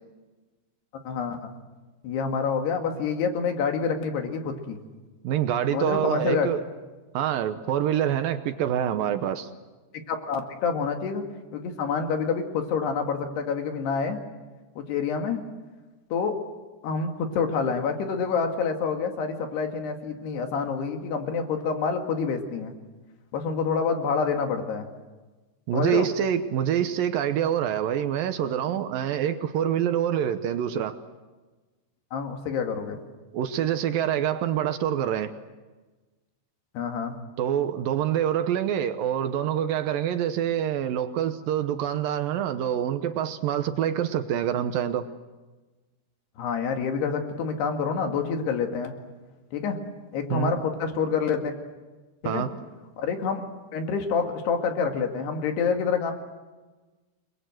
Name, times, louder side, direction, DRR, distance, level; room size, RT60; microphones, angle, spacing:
voice 1, 1.1-1.5 2.0-4.8 5.7-6.5 10.1-11.2 11.5-14.2 14.8-15.4 16.1-16.4 16.8-22.7 23.3-24.9 25.7-26.1 32.1-33.0 36.7-37.1 46.4-48.9 49.5-49.8 50.1-51.5 52.2-52.5 53.0-53.4 53.7-56.1, left 5 dB, 65° left, 4 dB, 4.0 m, -27 dB
voice 2, 5.2-6.6 7.1-9.5 25.7-31.0 33.3-35.3 37.4-45.1 50.3-50.5 52.2-52.5, right 10 dB, 75° right, 9 dB, 2.1 m, -26 dB
29.0 x 22.5 x 7.8 m, 1.2 s
omnidirectional pair, 5.3 m